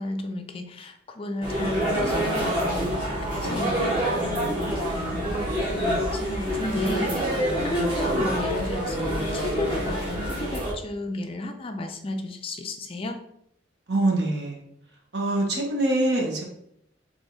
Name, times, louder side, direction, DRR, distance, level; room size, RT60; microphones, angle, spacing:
voice 1, 0.0-2.9 3.2-5.4 5.7-7.3 7.6-13.2, left 2 dB, 30° left, 5 dB, 0.4 m, -33 dB
sound 1, 1.4-10.7, equal, 25° right, 1.5 m, -26 dB
voice 2, 3.4-4.1 7.3-7.5 13.9-14.6 15.1-16.4, right 2 dB, 60° right, -1 dB, 1.2 m, -25 dB
3.5 x 3.5 x 3.9 m, 0.75 s
head